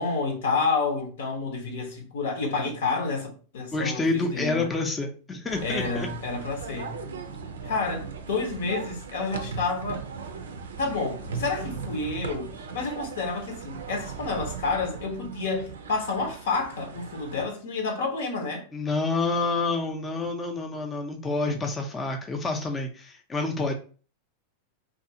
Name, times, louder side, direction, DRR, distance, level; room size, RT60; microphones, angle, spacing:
voice 1, 0.0-4.7 5.6-7.0 7.6-10.1 10.8-18.6 21.5-21.6, left 4 dB, 70° left, 0.8 m, -29 dB
voice 2, 3.7-6.1 18.7-23.7, left 3 dB, 20° left, 0.5 m, -28 dB
sound 1, 5.5-17.4, right 5 dB, 80° right, 0.4 m, -38 dB
2.6 x 2.4 x 2.7 m
hypercardioid pair, 95°, 0 cm